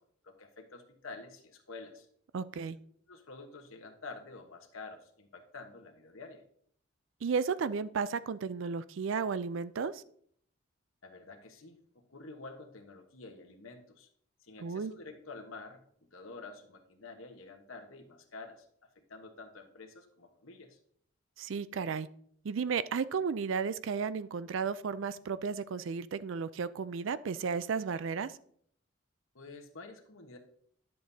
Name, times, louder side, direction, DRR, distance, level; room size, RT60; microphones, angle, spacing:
voice 1, 0.0-2.1 3.1-6.4 11.0-11.8 12.1-14.1 14.4-15.8 16.1-18.6 19.1-20.8 29.3-30.4, left 3 dB, 80° left, 4 dB, 1.2 m, -49 dB
voice 2, 2.3-2.8 7.2-10.0 14.6-14.9 21.4-22.1 22.4-28.4, right 5 dB, 65° right, 16 dB, 0.4 m, -33 dB
10.5 x 7.6 x 2.8 m, 0.64 s
head